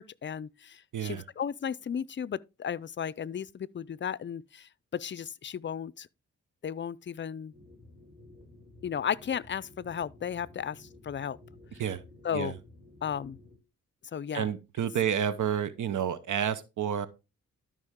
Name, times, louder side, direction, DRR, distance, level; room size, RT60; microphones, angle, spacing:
voice 1, 0.0-6.1 6.6-7.5 8.8-11.4 12.2-12.6 13.0-13.4 14.1-14.5, left 8 dB, 40° left, 0.5 m, -35 dB
voice 2, 0.9-1.2 11.8-12.0 12.3-12.5 14.3-17.1, right 8 dB, 85° right, 0.9 m, -30 dB
sound 1, 7.5-13.6, left 2 dB, 5° right, 5.3 m, -53 dB
12.5 x 5.3 x 3.6 m
cardioid pair, 80°, 30 cm